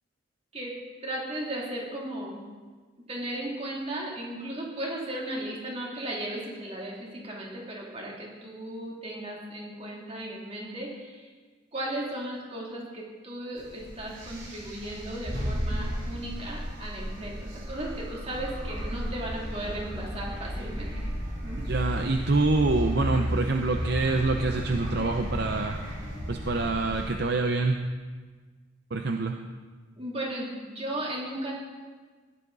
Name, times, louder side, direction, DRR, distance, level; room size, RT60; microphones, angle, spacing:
voice 1, 1.0-2.4 3.1-11.3 11.7-20.9 21.4-21.6 29.9-31.5, right 1 dB, 30° right, -3 dB, 2.9 m, -36 dB
sound 1, 13.6-27.1, equal, 80° right, 4.4 m, -34 dB
voice 2, 21.6-25.8 26.3-27.8 28.9-29.4, right 3 dB, 55° right, 4 dB, 0.7 m, -26 dB
16.0 x 11.0 x 4.0 m, 1.4 s
head